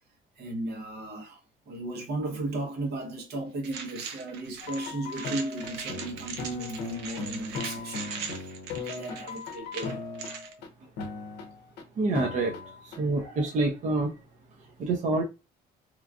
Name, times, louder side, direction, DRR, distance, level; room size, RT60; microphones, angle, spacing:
voice 1, 0.4-10.0, right 2 dB, 70° right, 0.9 m, -35 dB
sound 1, 3.6-10.5, right 6 dB, 85° right, 0.5 m, -40 dB
sound 2, 4.6-10.7 11.0-11.8 12.2-13.0, left 4 dB, 85° left, 0.6 m, -38 dB
voice 2, 12.0-12.5 12.8-14.1 14.8-15.2, right 3 dB, 45° right, 0.6 m, -27 dB
3.0 x 2.3 x 2.3 m
cardioid pair, 110°, 17 cm